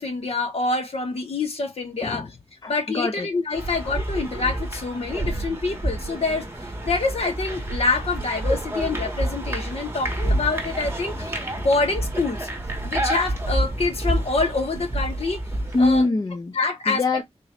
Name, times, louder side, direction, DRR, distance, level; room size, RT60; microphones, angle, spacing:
voice 1, 0.0-2.3 2.7-6.5 6.8-12.5 12.8-15.4 15.8-16.1 16.5-17.0, left 3 dB, 70° left, 1.3 m, -26 dB
voice 2, 2.6-3.3 15.7-16.6 16.9-17.2, left 2 dB, 35° left, 0.6 m, -23 dB
sound 1, 3.5-16.1, right 1 dB, 20° right, 1.2 m, -28 dB
3.8 x 2.5 x 3.2 m
wide cardioid pair, 85°, 11 cm